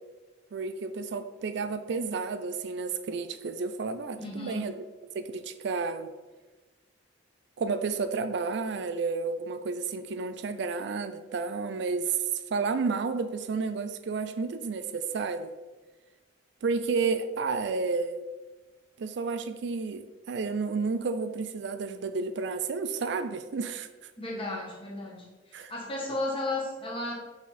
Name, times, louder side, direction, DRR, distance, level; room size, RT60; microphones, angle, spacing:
voice 1, 0.5-4.9 5.1-6.1 7.6-15.5 16.6-18.2 19.0-24.1 25.5-25.7, right 4 dB, 65° right, 10 dB, 0.4 m, -31 dB
voice 2, 4.2-4.7 24.2-27.1, left 2 dB, 30° left, -3 dB, 1.5 m, -34 dB
5.7 x 4.1 x 4.2 m, 1.2 s
head